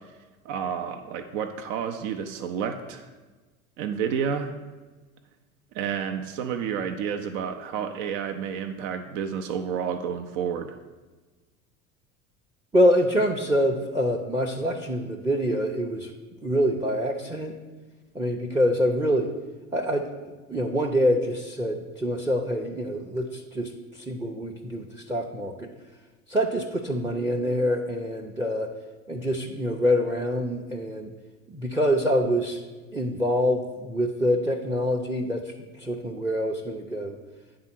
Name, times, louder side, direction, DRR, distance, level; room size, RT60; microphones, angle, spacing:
voice 1, 0.4-3.1 3.8-4.5 5.7-10.8, right 7 dB, 65° right, 6 dB, 0.6 m, -30 dB
voice 2, 12.7-16.1 16.4-17.5 18.1-19.3 19.7-20.1 20.5-25.7 26.3-28.7 29.1-31.1 31.5-32.6 32.9-37.2, equal, 5° right, 4 dB, 0.5 m, -25 dB
8.7 x 3.7 x 5.9 m, 1.3 s
hypercardioid pair, 80°, 41 cm